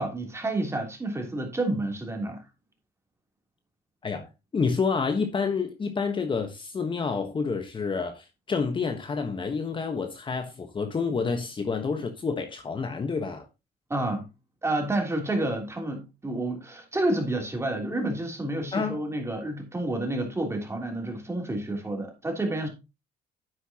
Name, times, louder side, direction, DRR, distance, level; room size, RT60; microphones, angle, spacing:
voice 1, 0.0-2.4 13.9-14.3 14.6-22.7, right 2 dB, 15° right, 3.2 m, -29 dB
voice 2, 4.0-13.5 18.7-19.0, left 5 dB, 30° left, 1.3 m, -29 dB
9.9 x 7.9 x 2.9 m
cardioid pair, 110°, 17 cm